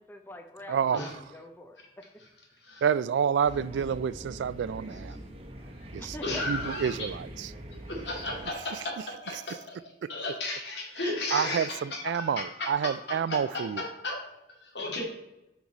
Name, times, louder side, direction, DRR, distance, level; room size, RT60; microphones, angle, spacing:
voice 1, 0.0-1.8 6.0-6.4, left 1 dB, 10° left, 0.5 m, -44 dB
voice 2, 0.7-1.1 2.8-5.2 5.9-6.2 6.5-7.5 8.7-8.8 9.3-9.4 11.3-13.8, right 7 dB, 85° right, 0.3 m, -28 dB
sound 1, 3.4-8.5, right 1 dB, 35° right, 1.0 m, -43 dB
voice 3, 6.2-7.1 7.9-8.7 9.2-9.8 10.1-11.8 12.1-12.2 12.6-12.7 13.3-13.4 13.8-14.1 14.6-15.0, left 2 dB, 75° left, 2.3 m, -34 dB
8.6 x 4.7 x 4.0 m
head